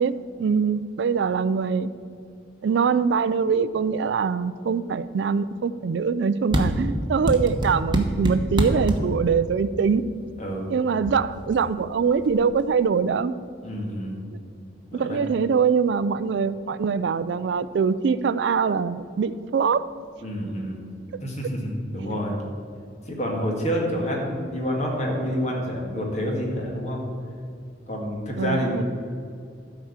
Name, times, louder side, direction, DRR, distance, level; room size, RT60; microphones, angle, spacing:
voice 1, 0.0-1.9 2.6-10.1 10.7-13.4 14.9-19.9 21.1-21.2 28.4-28.8, right 6 dB, 65° right, 15 dB, 0.3 m, -23 dB
sound 1, 6.5-6.6 7.3-9.0 10.4-10.7 11.0-11.2 11.5-12.7, equal, 25° right, 1.1 m, -26 dB
voice 2, 10.4-10.7 13.6-14.2 14.9-15.1 20.2-20.9 21.2-22.4 23.1-27.0 27.9-28.7, equal, 40° left, -1 dB, 2.0 m, -28 dB
12.0 x 4.9 x 7.2 m, 2.4 s
head